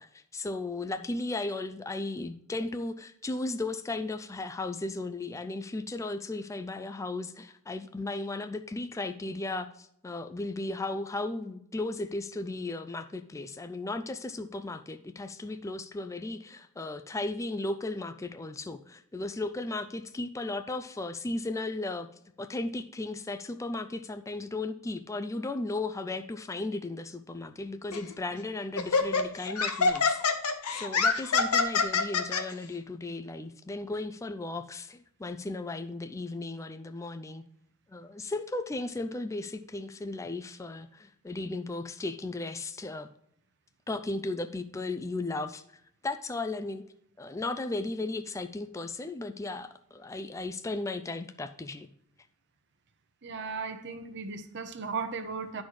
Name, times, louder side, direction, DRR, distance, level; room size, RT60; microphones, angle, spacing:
voice 1, 0.0-22.1 22.4-30.3 30.7-37.4 37.9-43.1 43.9-45.6 46.0-46.9 47.2-51.9, left 2 dB, 15° left, 0.3 m, -35 dB
Laughter, 27.9-28.1 28.8-32.4, left 4 dB, 90° left, 1.0 m, -25 dB
voice 2, 53.2-55.6, right 4 dB, 55° right, 0.9 m, -36 dB
11.0 x 4.2 x 4.7 m
head